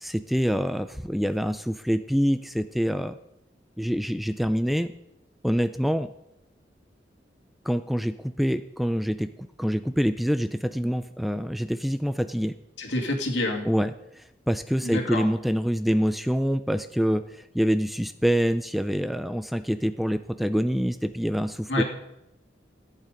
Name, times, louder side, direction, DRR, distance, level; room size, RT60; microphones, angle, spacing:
voice 1, 0.0-3.2 3.8-4.9 5.4-6.1 7.7-9.3 9.6-12.5 13.6-21.8, equal, ahead, 11 dB, 0.3 m, -26 dB
voice 2, 12.8-13.7 14.8-15.3 21.7-21.8, left 2 dB, 85° left, 1 dB, 2.4 m, -27 dB
14.0 x 8.4 x 5.1 m, 0.86 s
head